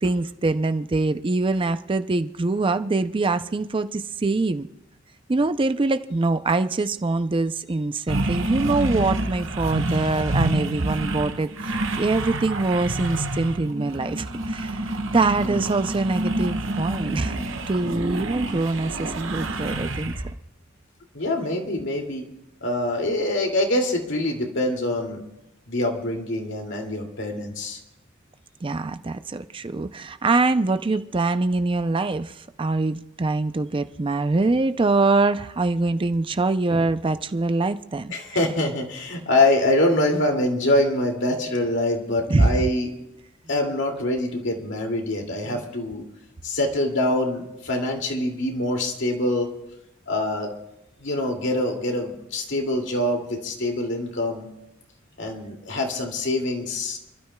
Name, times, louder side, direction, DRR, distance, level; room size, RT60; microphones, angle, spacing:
voice 1, 0.0-4.7 5.3-14.9 15.1-17.4 17.7-20.1 28.6-38.1 42.3-42.7 45.5-45.6, right 3 dB, 25° right, 0.4 m, -24 dB
sound 1, 8.1-20.3, right 1 dB, 70° right, 1.4 m, -28 dB
voice 2, 15.4-15.8 21.1-22.3 22.6-25.2 25.7-27.8 38.1-42.9 43.5-46.0 46.4-49.5 50.1-50.5 51.0-54.5 55.2-57.0, left 1 dB, 65° left, 2.4 m, -24 dB
29.0 x 12.5 x 2.3 m
head